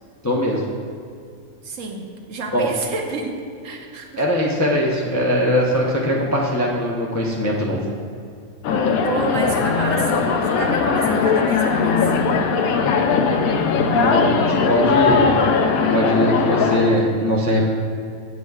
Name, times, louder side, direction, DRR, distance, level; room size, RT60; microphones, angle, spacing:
voice 1, 0.2-0.6 2.5-2.7 4.2-7.8 13.9-14.4 14.6-15.4 15.9-17.6, equal, 20° left, -3 dB, 0.4 m, -20 dB
voice 2, 1.6-3.4 3.6-4.2 9.0-12.0, right 4 dB, 70° right, 2 dB, 1.1 m, -29 dB
sound 1, 8.6-17.0, left 5 dB, 85° left, 1.0 m, -19 dB
9.1 x 8.2 x 2.3 m, 2.3 s
omnidirectional pair, 1.4 m